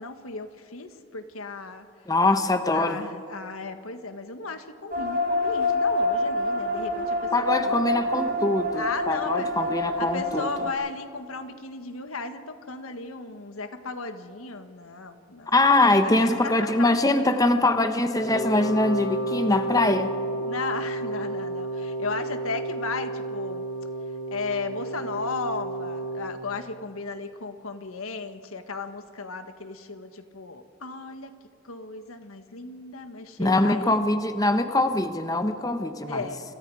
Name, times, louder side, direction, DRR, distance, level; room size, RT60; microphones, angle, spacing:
voice 1, 0.0-1.9 2.7-7.8 8.7-9.5 10.0-17.0 20.4-23.6 24.3-31.3 31.6-34.0 36.1-36.4, left 3 dB, 85° left, 8 dB, 1.6 m, -35 dB
voice 2, 2.1-3.0 7.3-10.5 15.5-20.1 33.4-36.2, left 2 dB, 15° left, 8 dB, 0.9 m, -23 dB
sound 1, 4.9-10.7, left 1 dB, 40° right, 2.6 m, -27 dB
Wind instrument woodwind instrument, 18.2-26.2, right 2 dB, 45° left, 6.5 m, -31 dB
29.5 x 26.0 x 4.9 m, 2.3 s
head